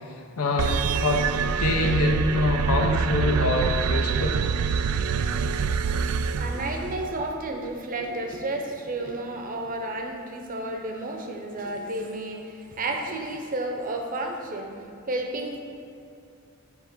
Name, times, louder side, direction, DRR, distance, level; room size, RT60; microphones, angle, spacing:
voice 1, 0.4-1.2 1.5-4.4, left 2 dB, 85° left, 2 dB, 0.8 m, -25 dB
sound 1, 0.6-7.2, right 6 dB, 90° right, 0.3 m, -26 dB
voice 2, 6.4-14.7 15.1-15.6, right 2 dB, 40° right, 3 dB, 0.7 m, -31 dB
7.2 x 3.5 x 6.1 m, 2.5 s
head